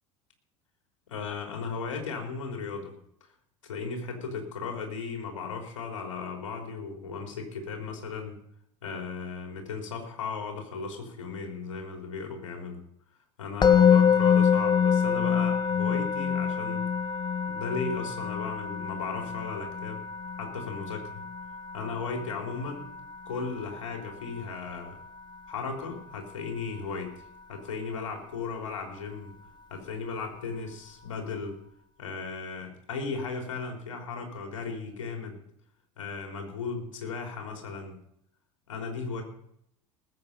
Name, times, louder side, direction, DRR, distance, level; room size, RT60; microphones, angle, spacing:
voice 1, 1.1-2.9 3.6-8.4 8.8-12.8 13.4-16.9 17.5-20.0 20.3-21.2 21.7-22.9 23.3-25.0 25.5-29.4 29.7-31.6 32.0-35.4 36.0-38.0 38.7-39.2, left 5 dB, 75° left, 3 dB, 3.6 m, -36 dB
Musical instrument, 13.6-24.7, left 7 dB, 25° left, 1.1 m, -26 dB
19.5 x 8.3 x 5.4 m, 0.72 s
figure-of-eight pair, 75°, 16 cm